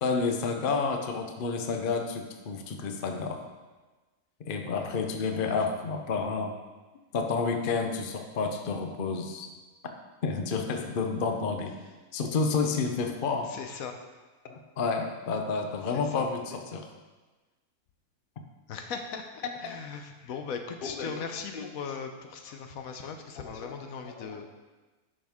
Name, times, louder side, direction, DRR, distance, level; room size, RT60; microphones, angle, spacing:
voice 1, 0.0-3.4 4.5-6.5 7.1-9.5 10.2-11.7 12.1-13.5 14.5-16.9 19.6-19.8 20.8-21.7 23.4-23.7 24.2-24.5, left 4 dB, 45° left, 4 dB, 0.7 m, -30 dB
voice 2, 5.4-5.7 13.4-14.0 15.9-16.3 18.7-24.5, left 6 dB, 70° left, 5 dB, 1.1 m, -39 dB
10.5 x 6.2 x 3.6 m, 1.3 s
omnidirectional pair, 1.6 m